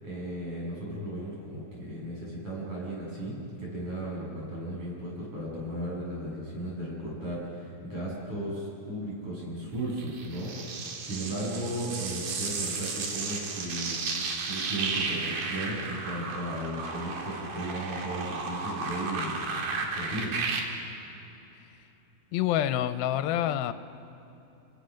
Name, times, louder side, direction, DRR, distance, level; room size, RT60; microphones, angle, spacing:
voice 1, 0.0-10.5 11.0-14.0 14.5-19.6 19.9-20.3, right 1 dB, 35° right, -5 dB, 8.5 m, -35 dB
sound 1, 10.0-20.6, right 4 dB, 75° right, 3.7 m, -34 dB
voice 2, 22.3-23.7, left 11 dB, 90° left, 11 dB, 2.5 m, -27 dB
30.0 x 18.5 x 6.5 m, 2.9 s
omnidirectional pair, 4.2 m